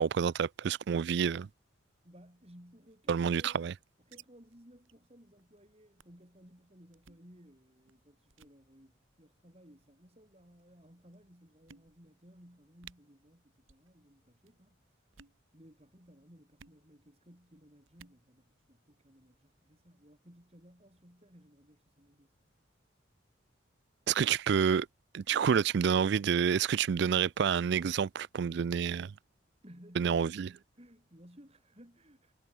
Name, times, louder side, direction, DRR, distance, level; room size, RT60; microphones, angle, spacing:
voice 1, 0.0-1.5 3.1-3.7 24.1-24.9 25.1-29.1 30.0-30.5, right 7 dB, 55° right, 0.3 m, -28 dB
voice 2, 2.0-3.7 4.0-14.8 15.5-22.3 29.6-30.3 30.7-32.3, equal, 30° right, 6.5 m, -58 dB
sound 1, 2.8-4.2 4.5-4.6 4.9-5.1 5.4-5.6 6.0-6.2 6.9-7.3 7.9-8.0 8.3-8.6 9.5-9.9 10.6-10.7 11.1-11.2 11.7-12.2 12.5-12.6 12.8-13.0 13.6-13.9 14.1-14.5 15.0-15.4 16.6-16.8 17.9-18.2, right 7 dB, 85° right, 1.7 m, -57 dB
head